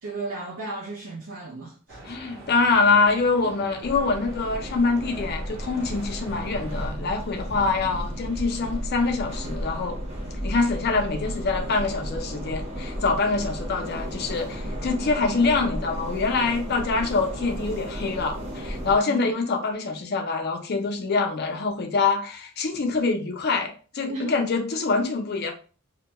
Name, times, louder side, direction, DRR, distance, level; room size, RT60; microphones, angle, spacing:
voice 1, 0.0-2.1 3.4-3.6 19.1-19.3 24.1-24.4, right 2 dB, 90° right, 0.6 m, -35 dB
sound 1, 1.9-6.9, right 1 dB, 50° right, 1.0 m, -44 dB
voice 2, 2.1-10.0 10.4-25.5, left 4 dB, 50° left, 0.5 m, -25 dB
sound 2, 3.8-19.0, equal, 30° right, 0.7 m, -33 dB
2.2 x 2.2 x 2.8 m
head